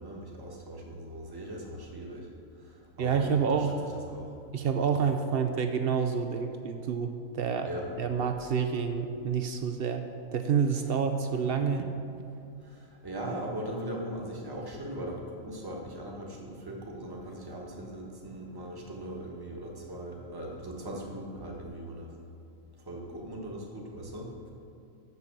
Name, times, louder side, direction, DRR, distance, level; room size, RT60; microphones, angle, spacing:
voice 1, 0.0-2.3 2.6-3.7 4.1-4.3 7.7-7.9 12.7-22.1 22.9-24.3, right 1 dB, 15° right, -2 dB, 1.2 m, -39 dB
voice 2, 3.0-3.8 4.5-7.7 8.0-10.0 10.3-11.9, right 6 dB, 65° right, 7 dB, 0.6 m, -28 dB
6.7 x 6.7 x 7.1 m, 2.7 s
omnidirectional pair, 1.5 m